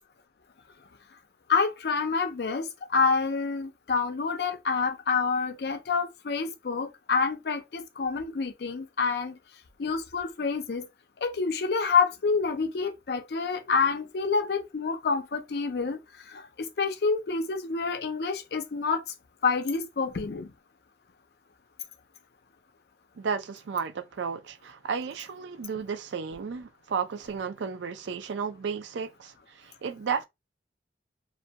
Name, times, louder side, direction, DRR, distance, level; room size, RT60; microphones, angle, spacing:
voice 1, 1.5-9.4 9.8-10.9 11.2-16.0 16.3-19.0 19.4-20.5, left 5 dB, 65° left, 0.4 m, -28 dB
voice 2, 23.2-30.3, right 6 dB, 85° right, 0.4 m, -33 dB
2.5 x 2.2 x 2.7 m
head